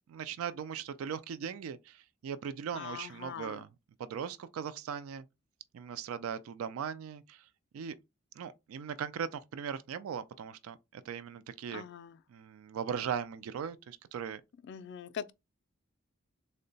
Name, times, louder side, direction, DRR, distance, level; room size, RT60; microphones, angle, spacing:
voice 1, 0.1-3.7 4.0-5.2 5.7-7.5 7.7-7.9 8.4-11.9 12.3-14.4, right 7 dB, 70° right, 0.3 m, -39 dB
voice 2, 2.7-3.6 11.7-12.2 14.6-15.3, left 8 dB, 55° left, 0.3 m, -42 dB
3.6 x 2.1 x 3.9 m
head